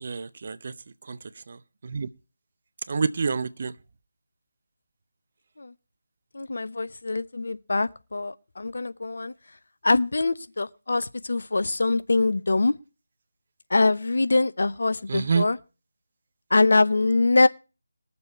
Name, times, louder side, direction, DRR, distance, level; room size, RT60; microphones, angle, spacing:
voice 1, 0.0-0.6 1.1-1.2 1.9-2.1 2.9-3.7 15.1-15.4, right 5 dB, 45° right, 0.7 m, -26 dB
voice 2, 6.3-9.3 9.8-12.7 13.7-15.6 16.5-17.5, left 3 dB, 60° left, 0.7 m, -23 dB
20.5 x 7.0 x 4.4 m
figure-of-eight pair, 160°, 0 cm